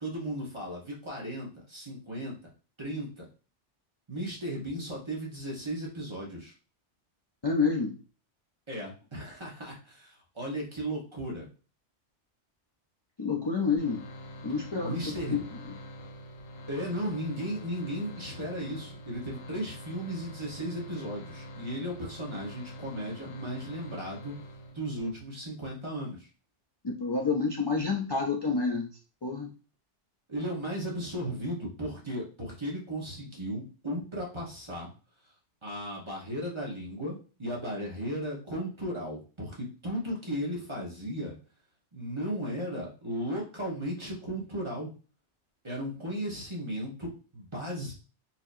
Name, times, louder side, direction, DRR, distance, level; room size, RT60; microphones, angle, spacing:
voice 1, 0.0-2.4 2.8-3.3 4.1-6.5 8.7-11.5 14.8-15.5 16.7-24.4 24.7-26.3 30.3-34.9 35.6-41.3 41.9-44.9 45.6-47.9, equal, 25° right, -3 dB, 1.1 m, -35 dB
voice 2, 7.4-8.0 13.2-14.0 14.4-15.0 15.3-15.4 26.8-28.9 29.2-29.5, left 4 dB, 35° left, -1 dB, 0.4 m, -28 dB
sound 1, 13.8-25.1, equal, 90° left, 1.0 m, -45 dB
4.3 x 2.7 x 2.6 m, 0.36 s
omnidirectional pair, 1.2 m